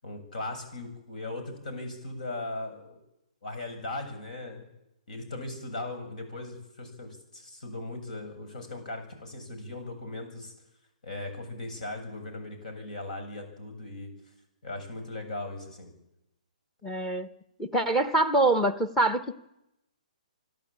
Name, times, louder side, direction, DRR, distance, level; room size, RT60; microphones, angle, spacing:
voice 1, 0.0-3.0 3.4-4.7 5.1-10.5 11.0-14.1 14.6-15.9, left 2 dB, 70° left, 7.8 m, -38 dB
voice 2, 16.8-17.3 17.6-19.3, right 2 dB, 5° left, 1.0 m, -25 dB
26.0 x 12.5 x 8.8 m
hypercardioid pair, 150°, 4 cm